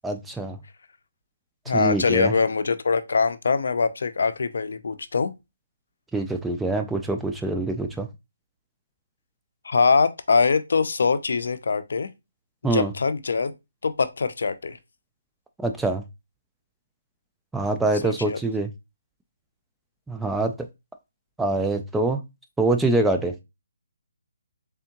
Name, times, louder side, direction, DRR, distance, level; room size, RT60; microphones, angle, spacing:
voice 1, 0.0-0.6 1.7-2.3 6.1-8.1 12.6-12.9 15.6-16.0 17.5-18.7 20.1-20.5 21.4-22.2 22.6-23.3, right 2 dB, 5° right, 0.3 m, -24 dB
voice 2, 1.7-5.3 9.6-12.1 12.6-13.5 13.8-14.8 18.0-18.4, left 4 dB, 70° left, 0.5 m, -23 dB
3.6 x 3.4 x 2.9 m
hypercardioid pair, 165°, 0 cm